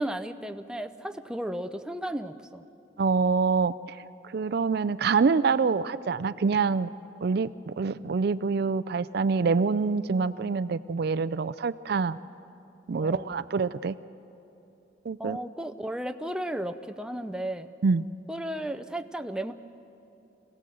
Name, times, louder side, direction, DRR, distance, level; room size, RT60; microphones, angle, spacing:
voice 1, 0.0-2.6 13.0-13.4 15.2-17.7 18.3-19.5, right 1 dB, 5° right, 8 dB, 0.5 m, -34 dB
voice 2, 3.0-4.0 4.3-6.9 7.2-12.2 12.9-14.0 15.0-15.4 17.8-18.1, right 5 dB, 55° right, 15 dB, 0.4 m, -26 dB
25.5 x 17.0 x 7.7 m, 2.9 s
head